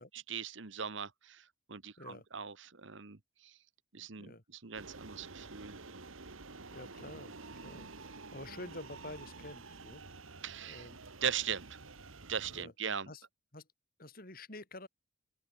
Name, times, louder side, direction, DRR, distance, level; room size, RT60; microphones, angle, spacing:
voice 1, 0.0-3.5 3.9-5.8 10.4-10.9 11.2-11.8 12.3-13.1, right 7 dB, 65° right, 1.3 m, -40 dB
sound 1, 4.7-12.6, right 3 dB, 85° right, 2.1 m, -50 dB
voice 2, 6.7-7.3 7.6-10.0 10.6-11.0 12.5-12.7 13.1-13.2 13.5-13.7 14.0-14.9, left 2 dB, 45° left, 4.6 m, -48 dB
open air
head